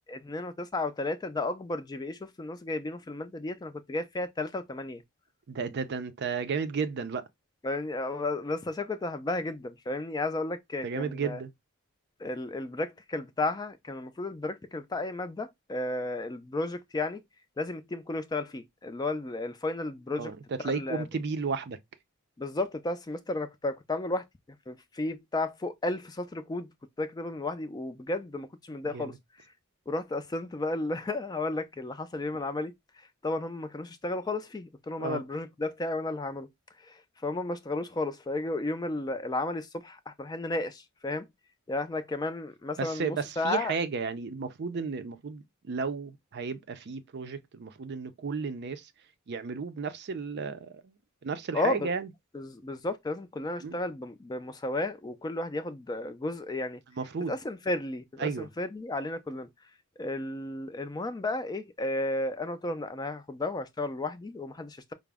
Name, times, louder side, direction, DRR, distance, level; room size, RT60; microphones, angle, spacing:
voice 1, 0.1-5.0 7.6-11.4 12.2-17.2 17.6-20.3 20.6-21.1 22.4-24.3 24.7-26.7 27.0-29.1 29.9-32.7 33.2-36.5 36.8-41.3 41.7-43.8 51.5-51.9 52.3-56.8 57.3-59.5 60.0-64.9, left 2 dB, 20° left, 0.3 m, -33 dB
voice 2, 5.5-7.2 10.8-11.5 20.2-21.8 28.9-29.2 35.0-35.2 42.8-48.9 49.3-50.9 51.2-52.1 53.6-53.8 57.0-57.4 58.2-58.5, right 5 dB, 50° right, 0.4 m, -33 dB
4.8 x 2.0 x 3.4 m
head